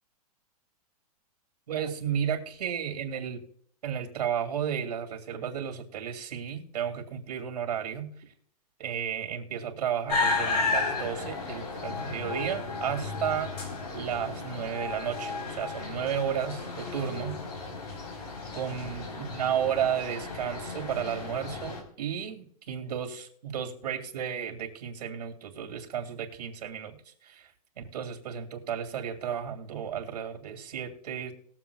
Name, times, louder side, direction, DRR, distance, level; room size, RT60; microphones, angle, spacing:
voice 1, 1.7-3.4 3.8-8.1 8.8-13.5 13.9-17.4 18.5-27.0 27.2-27.5 27.8-31.3, right 8 dB, 85° right, 5 dB, 2.6 m, -33 dB
sound 1, 10.1-21.8, left 3 dB, 80° left, 4.0 m, -33 dB
21.0 x 7.5 x 2.4 m, 0.66 s
supercardioid pair, 180°, 20 cm